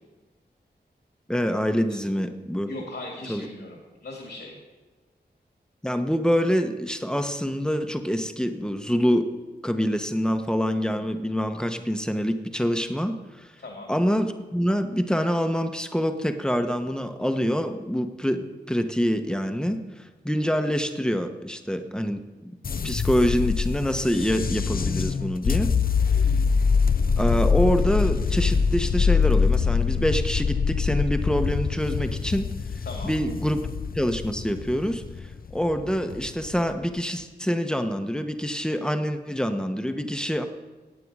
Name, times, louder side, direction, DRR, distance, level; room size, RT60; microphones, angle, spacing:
voice 1, 1.3-2.7 3.3-3.5 5.8-9.3 9.6-13.5 13.9-22.6 22.8-25.8 27.2-32.5 33.0-33.7 33.9-35.0 35.5-40.4, equal, 5° left, 6 dB, 1.1 m, -26 dB
voice 2, 2.7-4.6 13.6-13.9 32.8-33.1, left 2 dB, 80° left, 0 dB, 2.3 m, -38 dB
sound 1, 22.6-36.8, left 5 dB, 55° left, 0.5 m, -24 dB
17.0 x 8.9 x 4.8 m, 1.3 s
wide cardioid pair, 60°, 18 cm